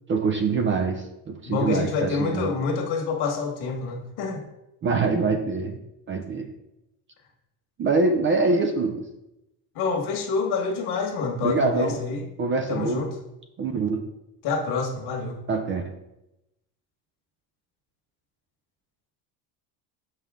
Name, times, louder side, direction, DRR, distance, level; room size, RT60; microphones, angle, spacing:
voice 1, 0.1-2.5 4.8-5.8 6.1-6.5 7.8-9.0 11.4-12.0 12.4-13.1 13.6-14.0 15.5-15.8, right 4 dB, 30° right, 5 dB, 0.5 m, -24 dB
voice 2, 1.4-4.4 9.7-12.2 12.7-13.1 14.4-15.4, left 4 dB, 60° left, 2 dB, 1.6 m, -27 dB
6.7 x 5.5 x 3.6 m, 0.91 s
cardioid pair, 150°, 43 cm